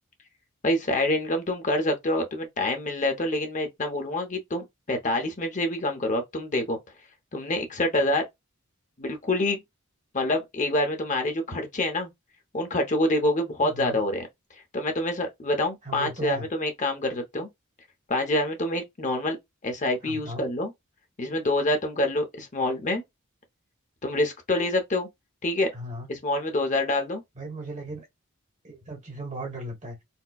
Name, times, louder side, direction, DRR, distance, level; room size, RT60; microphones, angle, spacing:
voice 1, 0.6-6.8 7.3-8.2 9.0-9.6 10.1-12.1 12.5-14.3 14.7-17.5 18.1-19.4 19.6-20.7 21.2-23.0 24.0-25.1 25.4-25.7 26.1-27.2, left 1 dB, 35° left, 0.9 m, -26 dB
voice 2, 13.6-14.0 15.8-16.5 20.0-20.4 25.7-26.1 27.4-28.0 28.6-30.0, right 2 dB, 35° right, 1.3 m, -37 dB
4.3 x 2.2 x 2.3 m
head